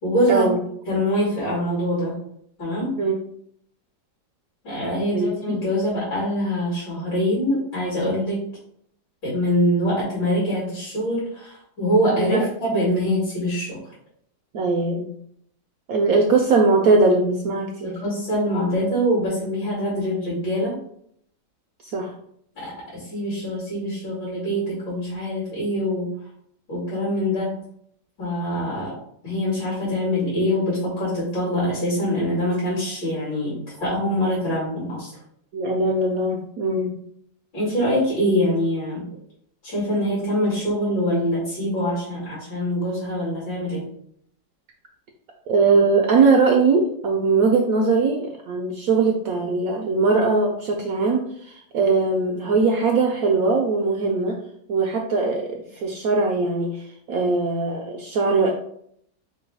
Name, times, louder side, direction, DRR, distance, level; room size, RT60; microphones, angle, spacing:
voice 1, 0.0-0.5 0.9-2.2 2.6-3.0 4.6-8.5 9.2-13.8 17.8-20.8 22.6-26.2 26.7-27.6 28.2-29.0 29.2-35.1 37.5-39.0 39.6-43.9, equal, 75° left, -7 dB, 2.8 m, -24 dB
voice 2, 5.1-5.6 12.2-12.4 14.5-15.1 15.9-18.0 21.8-22.1 35.5-36.9 45.5-54.4 54.7-58.5, right 3 dB, 70° right, 1 dB, 0.8 m, -20 dB
4.6 x 2.2 x 4.5 m, 0.69 s
omnidirectional pair, 2.0 m